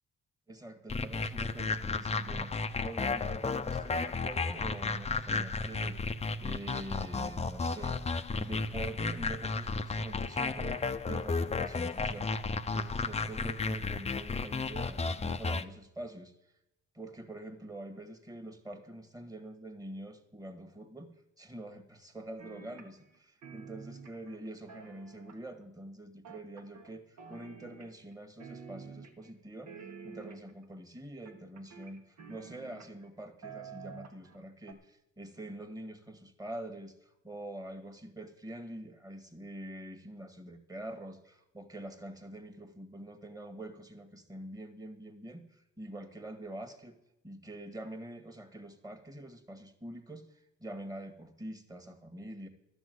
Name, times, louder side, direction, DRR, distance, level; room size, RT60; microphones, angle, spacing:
voice 1, 0.5-2.5 2.8-8.0 8.3-12.3 12.7-16.3 16.9-21.1 21.4-29.7 30.0-47.0 47.2-52.5, right 1 dB, 10° right, 7 dB, 1.8 m, -45 dB
sound 1, 0.9-15.6, left 4 dB, 20° left, 0.6 m, -33 dB
sound 2, 22.4-23.2 23.4-25.6 26.2-26.9 27.2-28.1 28.4-29.3 29.7-30.7 31.3-33.1 33.4-34.4 34.7-34.8, right 6 dB, 70° right, 1.8 m, -49 dB
12.5 x 6.2 x 9.4 m, 0.85 s
cardioid pair, 90°, 30 cm